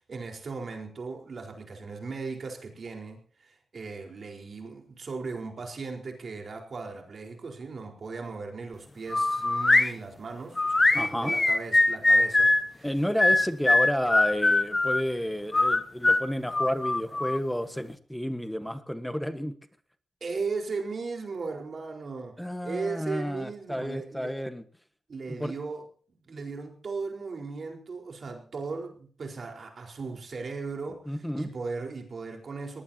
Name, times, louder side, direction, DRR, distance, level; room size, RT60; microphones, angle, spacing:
voice 1, 0.0-12.9 20.2-24.4 25.1-25.8 26.2-32.8, right 4 dB, 45° right, 3 dB, 4.5 m, -37 dB
sound 1, 9.1-9.9 10.6-12.6 13.2-15.0 15.5-17.4, left 2 dB, 20° left, 1.2 m, -22 dB
voice 2, 10.9-11.3 12.8-19.5 22.4-24.6 25.3-25.5 31.1-31.5, equal, 5° left, 10 dB, 1.4 m, -31 dB
21.0 x 19.0 x 2.9 m, 0.43 s
wide cardioid pair, 145°, 0 cm